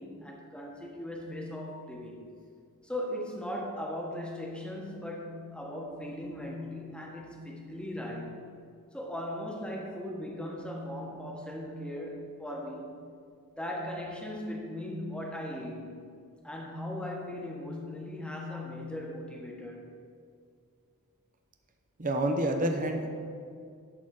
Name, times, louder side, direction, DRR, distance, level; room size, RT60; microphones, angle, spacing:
voice 1, 0.0-2.2 2.8-8.4 8.9-12.9 13.5-15.9 16.4-19.9, left 1 dB, 5° left, -2 dB, 1.3 m, -38 dB
voice 2, 22.0-23.1, right 1 dB, 40° right, 4 dB, 0.8 m, -28 dB
11.0 x 4.1 x 6.5 m, 2.3 s
head